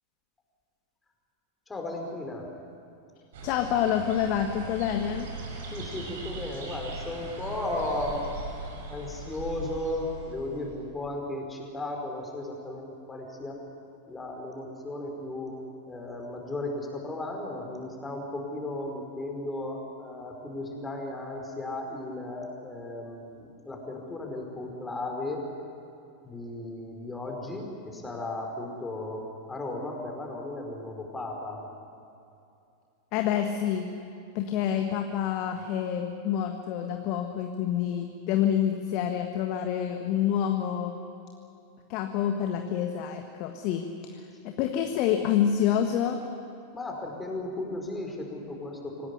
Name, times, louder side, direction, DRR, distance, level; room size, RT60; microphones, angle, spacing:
voice 1, 1.7-2.5 5.7-8.3 8.9-13.6 14.1-15.5 15.9-25.4 26.2-29.2 29.5-31.6 46.7-49.1, left 2 dB, 10° left, 1 dB, 5.0 m, -35 dB
sound 1, 3.3-11.0, right 2 dB, 55° right, 6.1 m, -39 dB
voice 2, 3.4-5.3 33.1-33.9 34.3-40.9 41.9-46.2, left 9 dB, 40° left, 5 dB, 1.6 m, -27 dB
25.5 x 18.0 x 9.9 m, 2.6 s
figure-of-eight pair, 90°, 0 cm